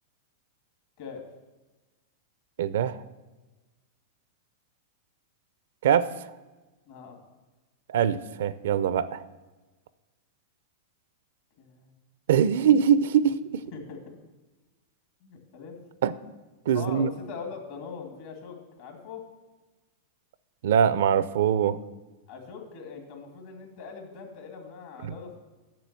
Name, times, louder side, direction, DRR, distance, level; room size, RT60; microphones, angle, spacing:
voice 1, 2.6-3.0 5.8-6.1 7.9-9.2 12.3-13.4 16.0-16.1 16.7-17.1 20.6-21.8, right 8 dB, 75° right, 16 dB, 0.4 m, -22 dB
voice 2, 6.9-7.2 11.6-11.9 13.7-14.0 15.2-15.8 16.7-19.2 22.3-25.4, left 5 dB, 60° left, 3 dB, 2.3 m, -41 dB
7.6 x 6.7 x 6.8 m, 1.2 s
hypercardioid pair, 125°, 0 cm